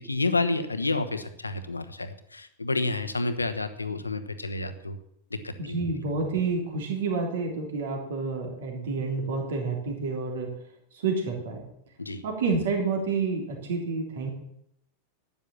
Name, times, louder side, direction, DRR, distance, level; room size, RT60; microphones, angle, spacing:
voice 1, 0.0-5.0 5.3-5.8 12.0-12.2, left 3 dB, 80° left, 10 dB, 1.1 m, -29 dB
voice 2, 5.6-10.5 10.9-11.6 12.2-14.3, right 4 dB, 60° right, 1 dB, 3.4 m, -29 dB
12.5 x 9.7 x 7.1 m, 0.76 s
figure-of-eight pair, 90°, 0 cm